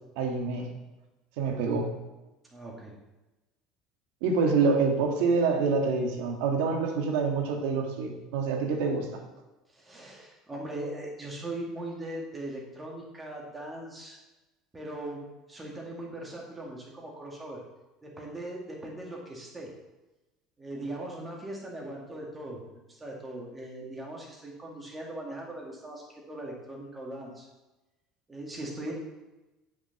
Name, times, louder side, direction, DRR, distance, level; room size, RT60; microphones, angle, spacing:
voice 1, 0.2-0.7 1.4-1.9 4.2-9.2, right 4 dB, 80° right, 3 dB, 1.8 m, -26 dB
voice 2, 2.5-2.9 9.7-14.2 14.7-17.6 18.0-19.7 20.6-27.5 28.3-28.9, right 1 dB, 15° right, -2 dB, 2.1 m, -40 dB
8.3 x 6.6 x 5.9 m, 1.1 s
cardioid pair, 160°, 0 cm